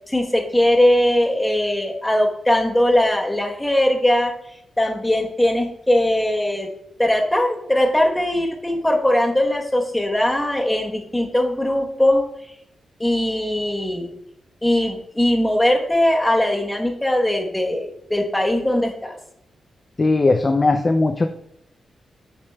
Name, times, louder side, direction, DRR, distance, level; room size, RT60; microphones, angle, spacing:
voice 1, 0.1-4.3 4.8-6.7 7.0-12.2 13.0-14.1 14.6-19.2, left 1 dB, 10° left, 2 dB, 1.0 m, -20 dB
voice 2, 20.0-21.3, left 3 dB, 25° left, 6 dB, 0.4 m, -18 dB
8.7 x 6.6 x 2.2 m, 0.76 s
wide cardioid pair, 125°, 0 cm